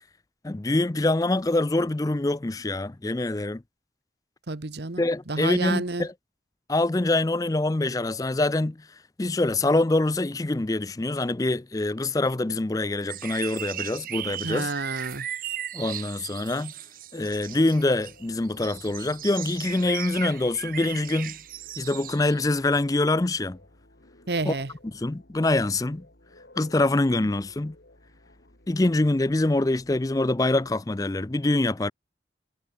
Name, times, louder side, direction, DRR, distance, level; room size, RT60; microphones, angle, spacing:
voice 1, 0.4-3.6 5.0-6.1 6.7-8.8 9.2-14.7 15.7-16.7 17.1-21.4 21.8-23.6 24.5-24.6 24.8-26.0 26.6-27.8 28.7-31.9, left 2 dB, 20° left, 0.4 m, -25 dB
voice 2, 4.5-6.1 14.4-15.3 24.3-24.7, right 3 dB, 70° right, 1.2 m, -30 dB
sound 1, 13.1-22.5 23.1-23.2, right 11 dB, 50° right, 0.8 m, -37 dB
sound 2, 17.1-30.7, left 1 dB, 70° left, 3.3 m, -56 dB
head